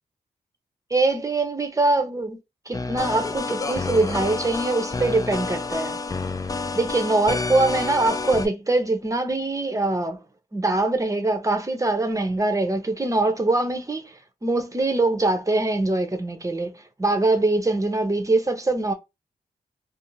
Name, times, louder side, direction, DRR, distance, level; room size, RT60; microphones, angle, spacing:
voice 1, 0.9-2.4 2.7-6.0 6.7-10.2 10.5-18.9, right 2 dB, 20° right, 0.7 m, -23 dB
sound 1, 2.7-8.5, left 3 dB, 25° left, 0.3 m, -29 dB
2.5 x 2.0 x 3.0 m
cardioid pair, 55°, 15 cm